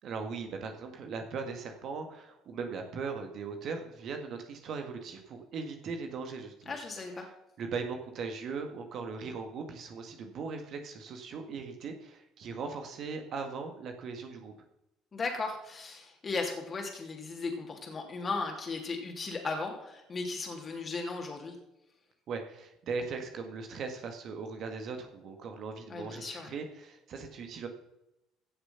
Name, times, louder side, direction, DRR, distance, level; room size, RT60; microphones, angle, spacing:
voice 1, 0.0-6.7 7.6-14.5 22.3-27.7, right 5 dB, 55° right, 5 dB, 1.7 m, -39 dB
voice 2, 6.7-7.2 15.1-21.6 25.9-26.5, left 3 dB, 35° left, 1 dB, 2.8 m, -36 dB
16.0 x 6.7 x 5.8 m, 0.87 s
hypercardioid pair, 55°, 0 cm